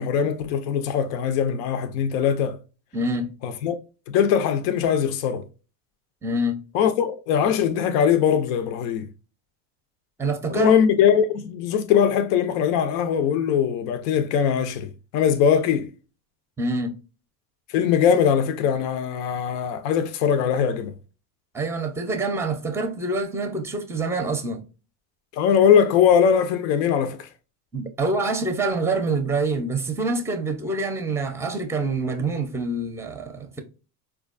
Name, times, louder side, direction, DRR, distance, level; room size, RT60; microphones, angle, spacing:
voice 1, 0.0-2.6 3.4-3.7 4.1-5.4 6.7-9.1 10.5-15.9 17.7-20.9 25.3-27.3, left 8 dB, 85° left, 0.6 m, -21 dB
voice 2, 2.9-3.3 6.2-6.6 10.2-10.7 16.6-16.9 21.5-24.6 27.7-33.6, right 2 dB, 5° right, 0.5 m, -26 dB
4.4 x 2.3 x 2.4 m
supercardioid pair, 100°, 47 cm